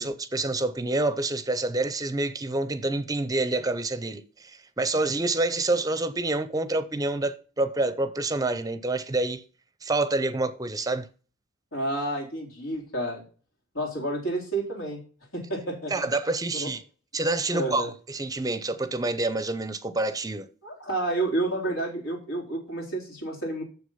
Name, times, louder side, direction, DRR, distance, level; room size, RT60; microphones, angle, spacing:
voice 1, 0.0-9.4 9.8-11.1 15.9-16.8 17.1-20.5, right 2 dB, 20° right, 0.5 m, -27 dB
voice 2, 11.7-13.2 13.7-15.0 15.3-16.1 16.5-16.7 17.5-17.9 20.6-23.6, right 2 dB, 85° left, 3.7 m, -30 dB
7.1 x 6.4 x 5.5 m
head